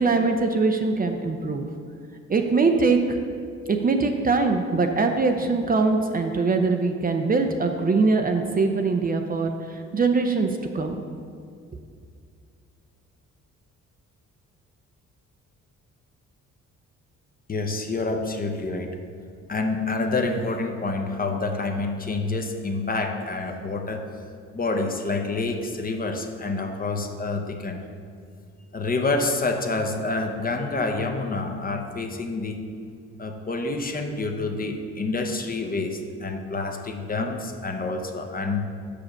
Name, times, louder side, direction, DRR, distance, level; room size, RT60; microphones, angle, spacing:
voice 1, 0.0-1.7 2.3-3.2 3.7-11.0, right 4 dB, 30° right, 5 dB, 0.5 m, -22 dB
voice 2, 17.5-19.0 19.5-24.1 24.5-27.8 28.7-32.6 33.2-38.7, left 3 dB, 30° left, 4 dB, 0.7 m, -28 dB
5.7 x 5.1 x 6.4 m, 2.3 s
cardioid pair, 90°, 30 cm